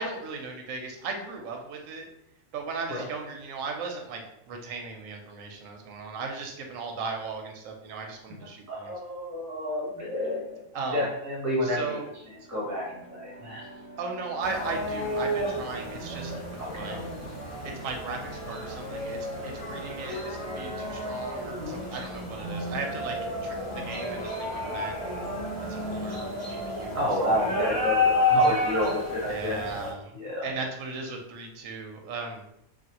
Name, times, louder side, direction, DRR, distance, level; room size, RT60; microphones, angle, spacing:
voice 1, 0.0-2.1 2.5-8.9 10.7-11.1 11.6-12.1 14.0-17.0 17.6-23.2 23.4-24.9 25.7-27.0 29.3-30.1 30.4-32.4, right 4 dB, 90° right, 3 dB, 1.0 m, -37 dB
voice 2, 8.4-12.0 12.5-13.7 16.6-17.2 26.9-29.7 30.1-30.6, left 1 dB, 15° right, -4 dB, 0.8 m, -30 dB
sound 1, 12.0-27.4, right 2 dB, 45° right, 0.8 m, -48 dB
sound 2, 14.4-29.9, left 1 dB, 15° left, 1.1 m, -31 dB
3.2 x 2.3 x 2.8 m, 0.80 s
omnidirectional pair, 1.3 m